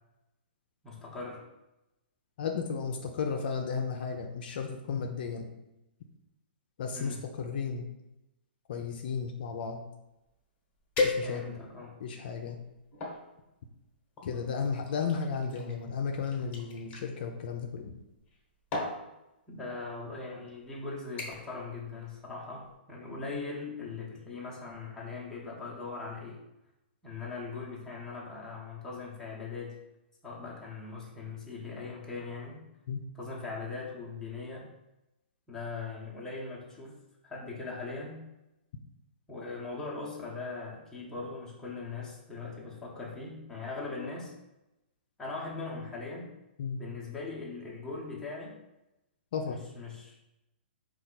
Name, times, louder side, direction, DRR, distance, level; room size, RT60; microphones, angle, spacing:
voice 1, 0.8-1.5 6.9-7.3 11.2-12.0 19.5-26.4 27.0-29.8 30.2-32.7 33.2-34.7 35.5-37.0 37.2-38.2 39.3-44.3 45.2-46.3 46.8-48.5 49.5-50.2, left 4 dB, 10° left, -4 dB, 0.9 m, -40 dB
voice 2, 2.4-5.5 6.8-7.9 8.7-9.9 11.0-11.4 12.0-12.6 14.2-18.0 32.9-33.0 46.6-46.8 49.3-49.6, left 5 dB, 60° left, 3 dB, 0.5 m, -34 dB
sound 1, 10.3-10.4 10.9-11.7 12.3-13.2 14.2-17.0 18.1-18.4 18.7-19.0 19.9-20.1 20.5-20.8 21.2-21.6 21.9-22.3 22.6-22.7, left 3 dB, 25° left, 1.1 m, -35 dB
4.2 x 2.4 x 4.0 m, 0.94 s
hypercardioid pair, 140°, 6 cm